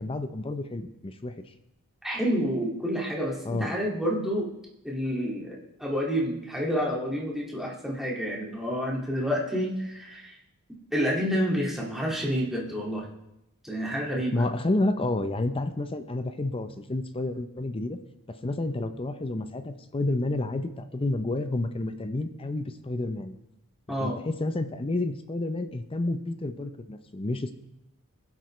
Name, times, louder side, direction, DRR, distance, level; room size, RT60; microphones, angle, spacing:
voice 1, 0.0-1.3 3.4-3.7 14.3-18.0 18.4-23.3 24.0-27.5, left 2 dB, 25° left, 9 dB, 0.6 m, -30 dB
voice 2, 2.0-4.5 4.8-10.4 10.9-13.1 13.6-14.5 23.9-24.2, equal, ahead, -3 dB, 2.1 m, -29 dB
22.0 x 7.9 x 3.2 m, 0.85 s
head